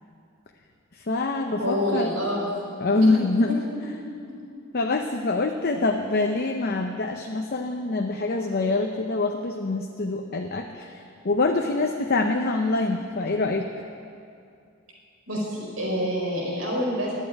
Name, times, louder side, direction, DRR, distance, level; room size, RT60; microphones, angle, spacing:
voice 1, 0.9-2.1 2.8-3.6 4.7-13.7, left 3 dB, 50° left, 3 dB, 0.7 m, -25 dB
voice 2, 1.6-2.5 3.0-3.1 4.3-4.5 15.3-17.1, equal, 80° right, -3 dB, 4.4 m, -27 dB
12.0 x 8.5 x 9.7 m, 2.4 s
head